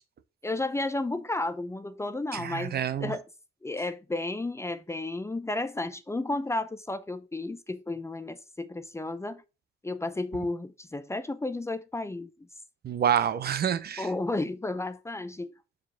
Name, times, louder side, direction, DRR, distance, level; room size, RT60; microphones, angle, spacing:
voice 1, 0.4-3.2 3.6-9.4 9.8-12.5 14.0-15.5, left 2 dB, 15° left, 0.6 m, -32 dB
voice 2, 2.3-3.1 12.8-14.1, right 9 dB, 50° right, 0.8 m, -27 dB
5.0 x 4.8 x 5.8 m
cardioid pair, 90°, 20 cm